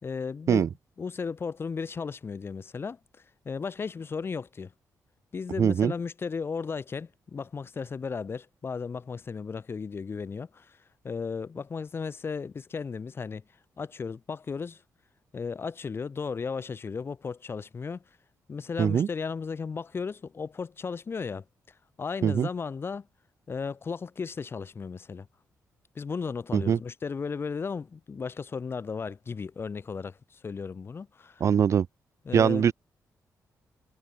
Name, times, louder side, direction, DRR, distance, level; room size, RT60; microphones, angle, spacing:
voice 1, 0.0-0.6 1.0-4.7 5.3-10.8 11.0-13.4 13.8-14.8 15.3-18.0 18.5-21.4 22.0-23.1 23.5-25.3 25.9-31.4 32.2-32.7, left 5 dB, 40° left, 3.4 m, -35 dB
voice 2, 5.6-5.9 18.8-19.1 22.2-22.5 26.5-26.8 31.4-31.9 32.3-32.7, right 8 dB, 50° right, 0.5 m, -22 dB
cardioid pair, 120°, 6 cm